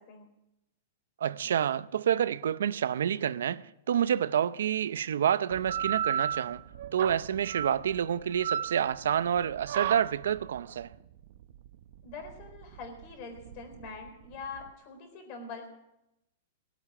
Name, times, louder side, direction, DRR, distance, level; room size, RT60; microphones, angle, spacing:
voice 1, 1.2-6.6 6.9-10.9, right 9 dB, 85° right, 0.6 m, -28 dB
sound 1, 5.5-14.7, right 9 dB, 55° right, 0.7 m, -35 dB
voice 2, 12.0-15.7, left 4 dB, 35° left, 4.0 m, -43 dB
19.0 x 8.4 x 8.7 m
supercardioid pair, 170°, 0 cm